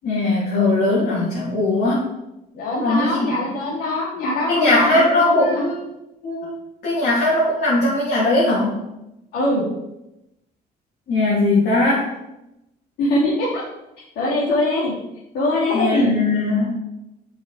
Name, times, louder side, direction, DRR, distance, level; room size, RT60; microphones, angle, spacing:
voice 1, 0.0-2.1 2.8-3.3 3.5-3.7 4.5-5.8 6.2-6.5 6.8-8.8 11.1-12.1 15.7-16.8, left 2 dB, 60° left, -8 dB, 2.9 m, -19 dB
voice 2, 2.5-5.6 9.3-9.6 13.0-13.6 14.2-14.9 15.3-16.1, left 1 dB, 80° left, -10 dB, 2.9 m, -22 dB
7.1 x 4.8 x 4.9 m, 0.91 s
cardioid pair, 110°, 17 cm